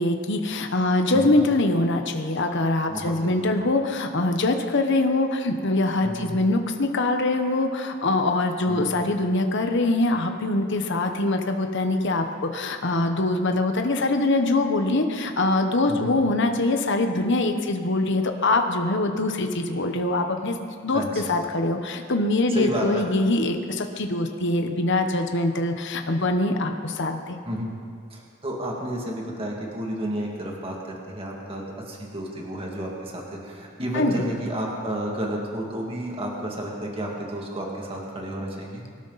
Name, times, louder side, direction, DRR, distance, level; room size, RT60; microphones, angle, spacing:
voice 1, 0.0-12.2 12.5-20.6 20.8-27.4 33.9-34.2, left 2 dB, 60° left, 5 dB, 1.1 m, -23 dB
voice 2, 2.9-3.4 6.0-6.3 8.7-8.8 15.9-16.2 20.9-21.3 22.5-23.0 27.5-27.7 28.1-38.9, right 1 dB, 30° right, -2 dB, 2.4 m, -31 dB
24.0 x 12.5 x 4.2 m, 2.1 s
head